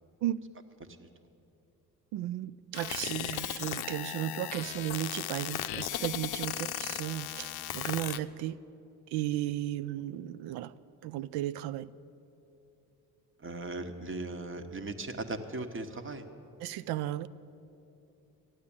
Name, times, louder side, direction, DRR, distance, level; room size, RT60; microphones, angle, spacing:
voice 1, 2.1-8.6 9.1-10.7 11.0-11.9 16.6-17.3, right 13 dB, 80° right, 0.5 m, -35 dB
sound 1, 2.7-8.2, left 13 dB, 75° left, 0.6 m, -36 dB
voice 2, 13.4-16.3, right 2 dB, 30° right, 1.3 m, -38 dB
14.0 x 9.4 x 8.7 m
supercardioid pair, 65°, 39 cm